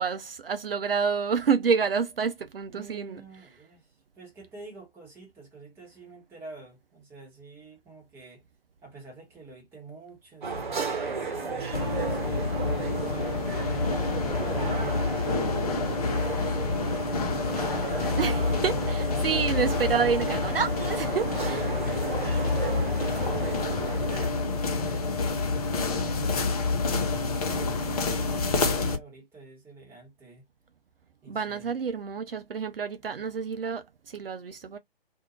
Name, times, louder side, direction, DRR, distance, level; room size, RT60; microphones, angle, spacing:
voice 1, 0.0-3.2 18.2-21.7 31.3-34.8, right 6 dB, 70° right, 0.5 m, -28 dB
voice 2, 2.7-3.9 4.2-8.4 8.8-12.5 13.2-20.5 22.1-30.4 31.2-31.7, right 3 dB, 5° right, 1.0 m, -48 dB
sound 1, 10.4-24.3, right 4 dB, 50° right, 1.2 m, -34 dB
sound 2, 11.7-29.0, left 3 dB, 40° left, 0.7 m, -28 dB
2.6 x 2.3 x 2.9 m
figure-of-eight pair, 130°, 30 cm